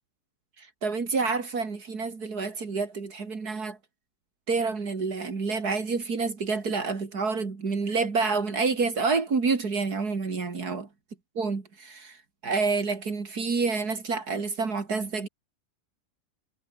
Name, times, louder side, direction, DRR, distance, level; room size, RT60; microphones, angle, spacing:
voice 1, 0.6-3.8 4.5-10.9 11.3-12.2 12.4-15.3, right 4 dB, 80° right, 3.3 m, -28 dB
omnidirectional pair, 1.6 m